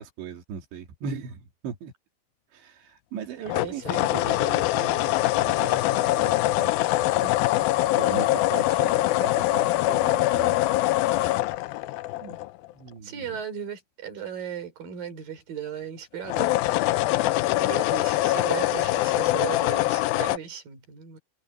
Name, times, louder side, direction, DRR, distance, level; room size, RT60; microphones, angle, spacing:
voice 1, 0.0-1.9 2.5-6.7 7.2-10.9 12.2-12.4 12.7-13.4, right 7 dB, 85° right, 4.8 m, -39 dB
sound 1, 3.5-12.7 16.2-20.4, left 17 dB, 90° left, 2.0 m, -23 dB
voice 2, 3.6-4.2 13.0-16.6 17.6-21.2, right 8 dB, 55° right, 6.7 m, -36 dB
omnidirectional pair, 5.0 m